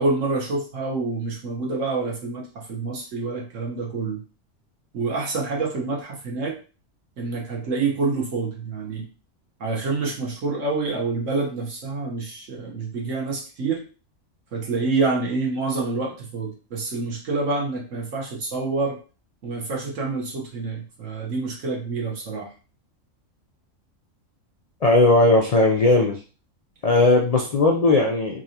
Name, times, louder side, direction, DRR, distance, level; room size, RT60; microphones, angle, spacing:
voice 1, 0.0-4.2 4.9-6.5 7.2-9.1 9.6-13.8 14.5-19.0 19.4-22.5, right 3 dB, 70° right, -1 dB, 1.4 m, -27 dB
voice 2, 24.8-26.2 26.8-28.4, left 2 dB, 85° left, 0 dB, 0.3 m, -17 dB
3.7 x 3.0 x 2.8 m, 0.35 s
omnidirectional pair, 1.4 m